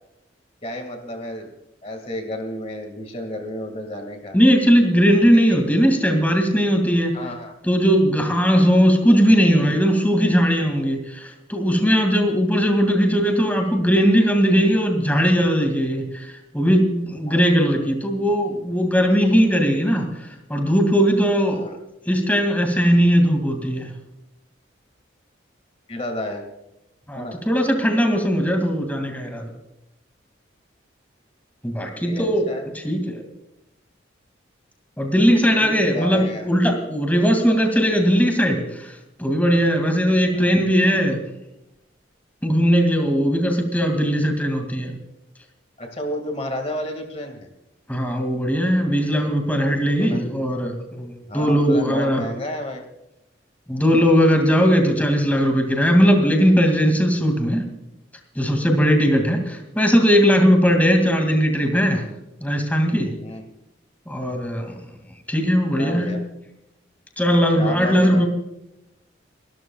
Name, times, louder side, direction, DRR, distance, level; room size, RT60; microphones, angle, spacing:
voice 1, 0.6-1.5 1.8-4.4 7.1-7.5 17.3-17.4 21.5-21.8 25.9-26.4 27.1-27.4 32.0-32.7 35.6-36.5 40.3-40.6 45.8-47.5 50.0-50.2 51.3-52.8 63.2-63.5 65.7-66.2 67.6-68.3, left 1 dB, 30° left, 4 dB, 2.0 m, -31 dB
voice 2, 4.3-7.2 7.7-20.1 20.5-21.7 22.1-23.9 27.1-29.5 31.6-32.4 32.8-33.2 35.0-38.9 39.2-41.2 42.4-44.9 47.9-52.2 53.7-57.6 58.4-62.0 62.4-63.1 64.1-64.8 65.3-66.2 67.2-68.3, equal, 10° left, 4 dB, 2.3 m, -19 dB
29.5 x 13.0 x 2.3 m, 0.90 s
head